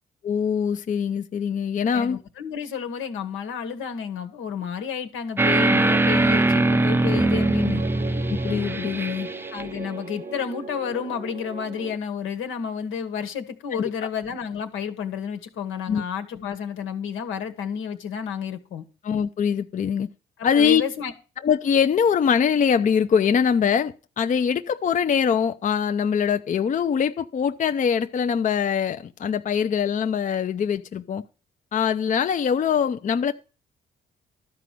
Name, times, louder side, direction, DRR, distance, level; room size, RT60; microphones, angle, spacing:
voice 1, 0.2-2.2 8.3-9.3 13.8-13.9 15.9-16.0 19.0-20.1 20.4-20.8 21.4-31.2 31.7-33.3, left 7 dB, 40° left, 0.6 m, -23 dB
voice 2, 1.9-7.8 9.5-18.8 20.5-21.1, left 7 dB, 85° left, 1.6 m, -31 dB
sound 1, 5.4-9.6, right 2 dB, 10° right, 0.5 m, -21 dB
sound 2, 5.9-12.0, right 4 dB, 30° right, 0.8 m, -37 dB
12.5 x 5.0 x 7.6 m
cardioid pair, 90°, 20 cm